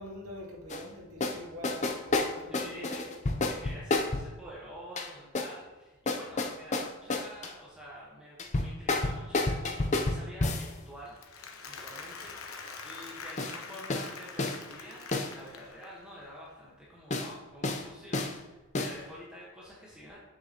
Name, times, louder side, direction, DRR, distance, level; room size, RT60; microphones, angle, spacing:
voice 1, 0.0-2.9, equal, 85° right, -4 dB, 2.2 m, -44 dB
sound 1, 0.7-0.8 1.2-1.4 1.6-4.3 5.0-5.5 6.1-7.5 8.4-10.7 13.4-13.6 13.9-14.1 14.4-14.6 15.1-15.3 17.1-17.3 17.6-17.8 18.1-18.3 18.7-19.0, left 2 dB, 35° left, 0.5 m, -30 dB
voice 2, 2.5-3.0 3.5-20.2, equal, 5° right, -6 dB, 1.2 m, -48 dB
Applause, 11.0-16.1, left 4 dB, 85° left, 0.9 m, -45 dB
7.9 x 6.8 x 2.9 m, 1.1 s
head